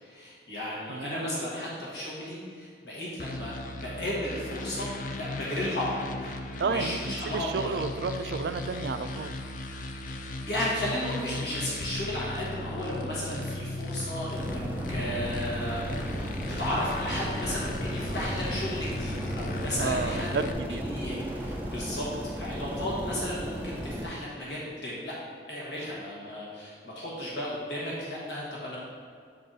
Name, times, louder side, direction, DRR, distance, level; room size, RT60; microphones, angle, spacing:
voice 1, 0.0-4.9 5.1-6.3 6.6-7.8 10.1-10.2 10.5-14.6 14.9-22.1 22.4-25.1 25.5-28.8, left 1 dB, 70° left, -6 dB, 1.4 m, -34 dB
voice 2, 0.9-1.4 6.6-9.3 19.8-20.8, right 4 dB, 65° right, 9 dB, 0.4 m, -32 dB
sound 1, 3.2-20.5, left 1 dB, 45° left, 0.4 m, -36 dB
sound 2, 14.3-24.1, equal, 10° right, 0.5 m, -35 dB
7.6 x 3.8 x 4.1 m, 2.2 s
head